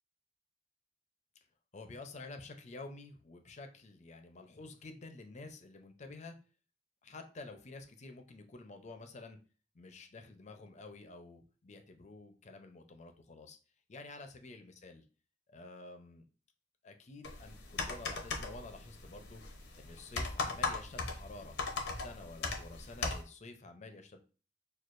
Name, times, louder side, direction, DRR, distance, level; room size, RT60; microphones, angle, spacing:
voice 1, 1.7-6.4 7.0-9.4 9.7-13.6 13.9-15.0 15.5-16.3 16.8-19.4 19.7-21.6 22.0-24.2, left 3 dB, 40° left, 6 dB, 0.6 m, -50 dB
sound 1, 17.2-23.2, left 3 dB, 85° left, 0.7 m, -39 dB
6.2 x 2.3 x 2.5 m, 0.37 s
head